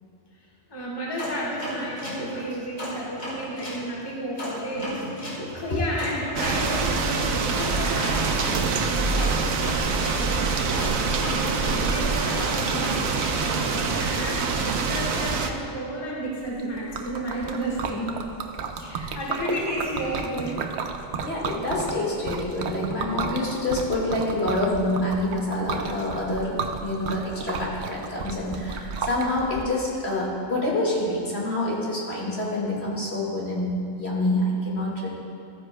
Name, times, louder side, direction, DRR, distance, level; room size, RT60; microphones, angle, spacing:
voice 1, 0.7-10.9 11.3-18.2 18.7-20.6, equal, 20° left, -5 dB, 1.4 m, -32 dB
sound 1, 1.2-3.8 4.4-10.2 10.8-14.0, left 1 dB, 85° left, 3.2 m, -35 dB
sound 2, 6.4-15.5, right 4 dB, 90° right, 1.1 m, -25 dB
Liquid, 16.4-29.6, right 5 dB, 65° right, 0.8 m, -33 dB
voice 2, 21.2-35.1, left 1 dB, 50° left, -4 dB, 2.1 m, -27 dB
14.5 x 9.6 x 2.2 m, 2.4 s
omnidirectional pair, 1.4 m